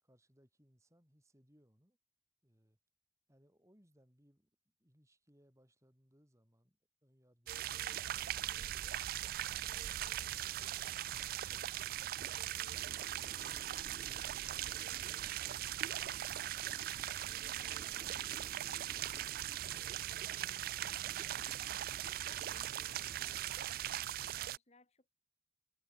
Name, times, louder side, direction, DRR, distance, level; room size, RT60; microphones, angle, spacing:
voice 1, 0.0-2.0 2.4-2.8 3.3-4.5 4.8-10.2, equal, 15° right, 5.8 m, -70 dB
sound 1, 7.5-24.6, right 12 dB, 50° right, 0.3 m, -40 dB
sound 2, 10.3-24.0, right 1 dB, 35° right, 1.4 m, -59 dB
Bird, 18.1-23.7, equal, ahead, 4.5 m, -77 dB
voice 2, 22.0-25.1, left 2 dB, 35° left, 3.0 m, -67 dB
head